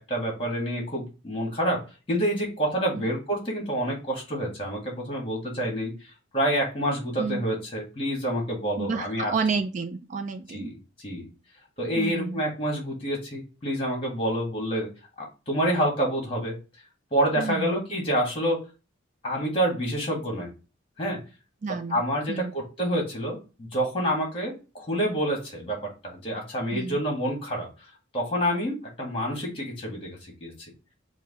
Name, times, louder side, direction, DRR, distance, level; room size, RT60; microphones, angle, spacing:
voice 1, 0.1-1.8 2.1-5.9 6.3-9.3 10.5-10.7 11.0-11.3 11.8-14.9 15.2-16.6 17.1-18.6 19.2-20.5 21.0-21.2 21.9-25.8 26.0-27.7 28.1-30.5, equal, 25° left, 0 dB, 1.7 m, -28 dB
voice 2, 8.8-10.7 12.0-12.4 17.4-17.8 21.6-22.0 22.3-22.5 26.7-27.0, right 4 dB, 40° right, 7 dB, 0.3 m, -30 dB
4.8 x 2.2 x 4.7 m, 0.31 s
head